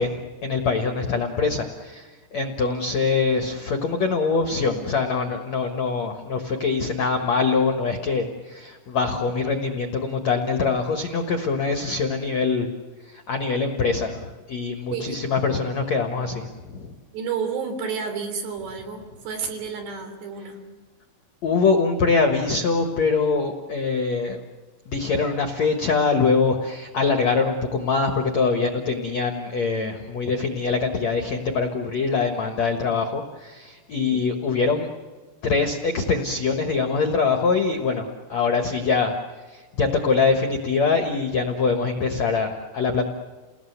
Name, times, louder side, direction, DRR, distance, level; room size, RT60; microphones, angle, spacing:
voice 1, 0.0-12.7 13.0-17.0 21.4-24.4 24.9-34.9 35.4-39.2 39.5-43.0, left 4 dB, 90° left, 4 dB, 1.5 m, -23 dB
voice 2, 17.1-20.6 34.0-34.2, right 6 dB, 60° right, 5 dB, 5.4 m, -31 dB
30.0 x 19.5 x 8.1 m, 1.3 s
omnidirectional pair, 5.8 m